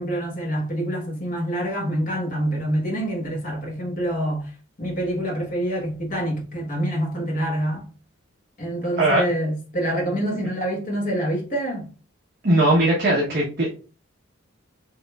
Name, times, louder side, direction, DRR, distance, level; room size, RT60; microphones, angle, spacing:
voice 1, 0.0-4.5 4.8-7.9 8.6-11.9, right 1 dB, 40° left, 1.3 m, -26 dB
voice 2, 12.4-13.7, right 1 dB, 50° right, 1.1 m, -19 dB
4.9 x 3.0 x 2.3 m
head